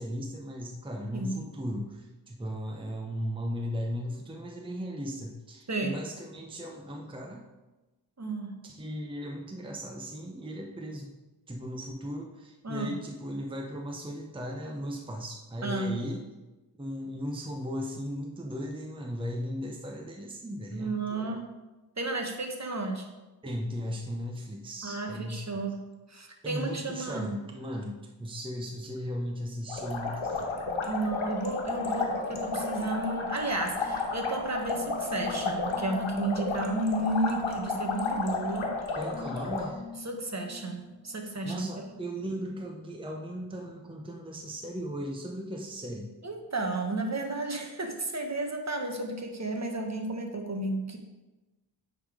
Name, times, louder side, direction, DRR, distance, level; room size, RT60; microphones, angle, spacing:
voice 1, 0.0-7.4 8.6-11.1 11.5-16.2 16.8-21.4 23.4-25.4 26.4-30.6 38.9-39.8 41.4-46.1, equal, 10° right, 1 dB, 0.8 m, -37 dB
voice 2, 5.7-6.0 8.2-8.6 12.6-13.0 15.6-16.0 20.7-21.5 22.0-23.1 24.8-25.8 26.1-27.3 30.9-38.8 40.0-41.8 46.2-51.0, right 2 dB, 35° right, 3 dB, 1.1 m, -32 dB
sound 1, 29.7-39.7, left 3 dB, 90° left, 1.4 m, -32 dB
sound 2, 31.2-43.4 43.7-45.3 45.7-46.1 46.4-46.5, left 5 dB, 25° left, 1.3 m, -45 dB
9.4 x 3.9 x 4.9 m, 1.1 s
wide cardioid pair, 80°, 46 cm